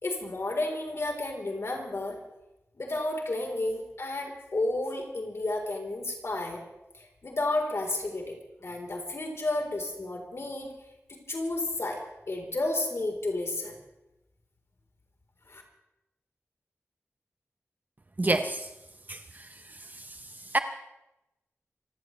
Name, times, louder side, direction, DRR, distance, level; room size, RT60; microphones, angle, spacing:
voice 1, 0.0-2.2 2.8-6.6 6.9-10.7 11.1-13.8 15.5-15.6, left 2 dB, 60° left, 1 dB, 3.8 m, -32 dB
voice 2, 18.2-18.7 19.1-19.5 20.0-20.2 20.5-20.6, right 2 dB, 35° right, 8 dB, 0.8 m, -28 dB
26.5 x 16.0 x 3.2 m, 0.92 s
wide cardioid pair, 80°, 5 cm